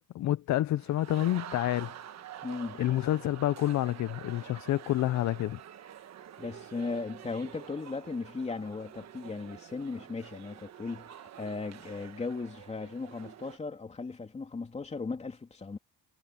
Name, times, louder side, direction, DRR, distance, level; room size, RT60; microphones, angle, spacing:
voice 1, 0.0-1.9 2.8-5.6, left 14 dB, 50° left, 0.5 m, -28 dB
sound 1, 0.8-13.6, right 10 dB, 45° right, 1.3 m, -47 dB
voice 2, 2.4-2.8 6.4-15.8, left 4 dB, 15° left, 3.2 m, -37 dB
cardioid pair, 180°, 38 cm